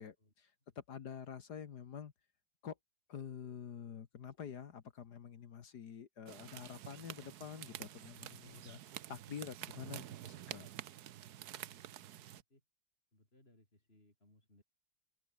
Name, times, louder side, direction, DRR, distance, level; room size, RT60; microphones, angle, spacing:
voice 1, 0.0-2.1 2.6-2.8 3.1-8.8 9.1-10.7, left 7 dB, 55° left, 1.7 m, -48 dB
sound 1, 6.3-12.4, right 12 dB, 60° right, 1.1 m, -49 dB
voice 2, 11.4-12.6 13.1-14.6, left 1 dB, 25° left, 7.6 m, -69 dB
omnidirectional pair, 2.2 m